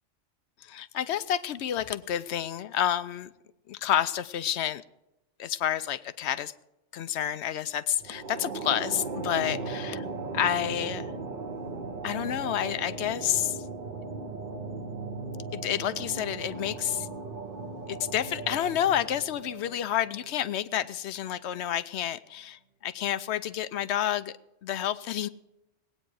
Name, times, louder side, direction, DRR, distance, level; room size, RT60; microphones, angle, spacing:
voice 1, 0.6-3.3 3.7-4.8 5.4-6.5 6.9-10.0 10.3-11.1 12.0-13.6 15.5-17.1 17.9-24.3 24.6-25.3, left 10 dB, 65° left, 0.8 m, -29 dB
sound 1, 8.0-20.6, right 3 dB, 40° right, 0.9 m, -37 dB
19.5 x 8.9 x 4.7 m
omnidirectional pair, 1.3 m